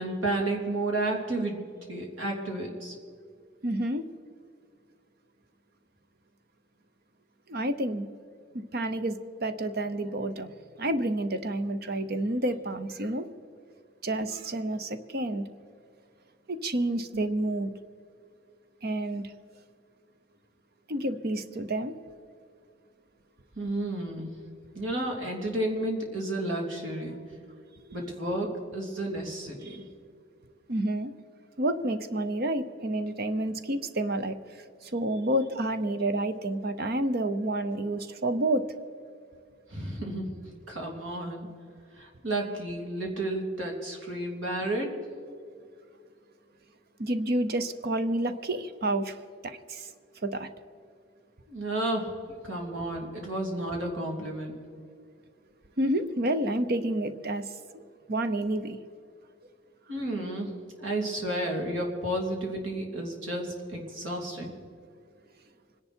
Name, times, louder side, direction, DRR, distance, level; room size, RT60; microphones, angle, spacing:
voice 1, 0.0-1.6 1.9-2.9 17.1-17.2 23.6-24.3 24.7-27.2 27.9-29.8 39.7-40.3 40.7-41.5 41.9-44.9 51.5-52.1 52.4-54.6 59.9-60.5 60.8-64.5, right 1 dB, 75° right, 0 dB, 3.3 m, -32 dB
voice 2, 3.6-4.0 7.5-8.1 8.5-10.5 10.8-13.3 14.0-15.5 16.5-17.7 18.8-19.3 20.9-21.9 29.6-29.8 30.7-31.1 31.6-34.4 34.8-38.7 47.0-49.9 50.2-50.5 55.8-57.5 57.7-57.8 58.1-58.8, right 1 dB, 50° right, 11 dB, 0.8 m, -29 dB
25.5 x 10.5 x 4.5 m, 2.3 s
head